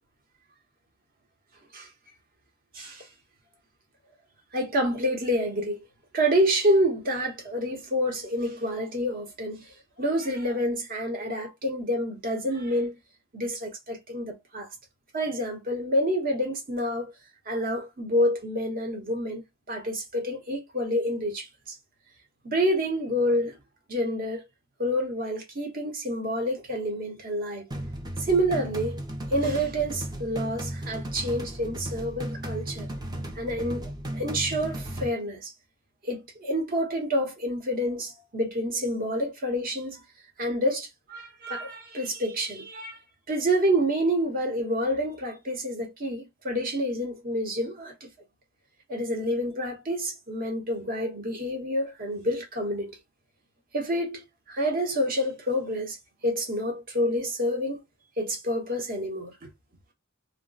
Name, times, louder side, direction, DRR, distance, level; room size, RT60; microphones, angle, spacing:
voice 1, 2.7-3.1 4.5-5.8 6.1-13.0 13.3-14.7 15.1-17.1 17.5-19.4 19.7-21.8 22.4-23.6 23.9-24.4 24.8-27.7 28.2-29.0 29.3-32.9 33.3-35.5 36.0-40.0 40.4-43.0 43.3-47.9 48.9-53.0 53.7-56.0 56.2-57.8 58.2-59.5, equal, 45° right, 1.0 m, -28 dB
sound 1, 27.7-35.1, right 1 dB, 20° right, 0.6 m, -35 dB
2.3 x 2.2 x 3.8 m
head